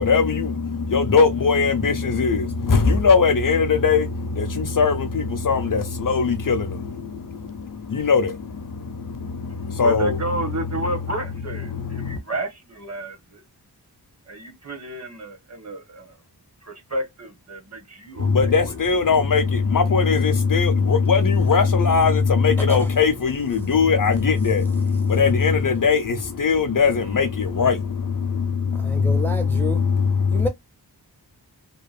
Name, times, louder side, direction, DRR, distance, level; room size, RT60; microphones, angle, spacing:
voice 1, 0.0-11.0 11.5-12.2 18.2-30.5, left 5 dB, 55° left, 0.6 m, -20 dB
voice 2, 9.8-13.4 14.3-16.1 16.6-18.3, right 2 dB, 40° right, 1.1 m, -31 dB
voice 3, 28.7-29.8 30.3-30.5, equal, 5° left, 0.5 m, -29 dB
2.9 x 2.2 x 2.3 m
wide cardioid pair, 70°, 39 cm